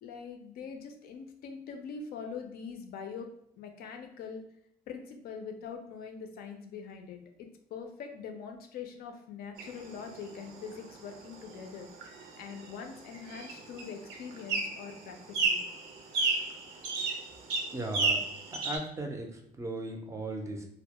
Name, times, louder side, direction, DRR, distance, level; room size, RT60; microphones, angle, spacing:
voice 1, 0.0-3.3 3.6-4.4 4.9-7.2 7.7-11.9 12.4-15.6, left 6 dB, 65° left, 5 dB, 0.4 m, -43 dB
sound 1, 9.6-18.8, right 3 dB, 85° right, 0.5 m, -34 dB
voice 2, 17.7-18.2 18.5-20.6, right 2 dB, 20° right, 2 dB, 0.4 m, -37 dB
2.2 x 2.0 x 2.8 m, 0.72 s
cardioid pair, 110°, 17 cm